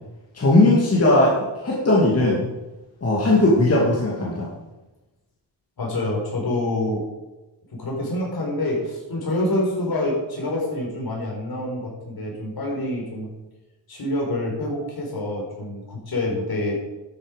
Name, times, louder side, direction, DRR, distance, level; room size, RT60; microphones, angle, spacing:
voice 1, 0.3-1.3 1.6-2.5 3.0-4.5, left 2 dB, 35° left, -4 dB, 2.4 m, -18 dB
voice 2, 5.8-7.1 7.7-13.3 13.9-16.8, left 1 dB, 55° left, -2 dB, 4.7 m, -26 dB
12.0 x 8.6 x 5.2 m, 1.1 s
wide cardioid pair, 125°, 43 cm